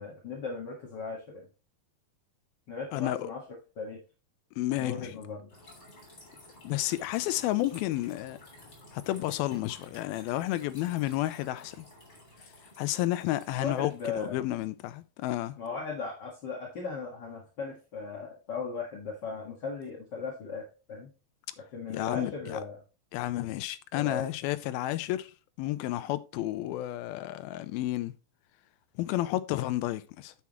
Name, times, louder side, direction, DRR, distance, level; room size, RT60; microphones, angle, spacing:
voice 1, 0.0-1.5 2.7-3.4 3.8-4.0 4.8-5.5 13.6-14.4 15.6-21.1 21.6-22.8 23.9-24.2, left 4 dB, 45° left, 1.5 m, -37 dB
voice 2, 2.9-3.3 4.6-5.1 6.6-8.4 8.9-11.9 12.8-15.6 21.9-22.6 23.1-25.3 25.6-28.1 29.0-30.3, left 15 dB, 90° left, 2.5 m, -31 dB
sound 1, 5.5-14.4, left 1 dB, 20° left, 3.0 m, -53 dB
9.4 x 7.4 x 3.1 m
omnidirectional pair, 4.3 m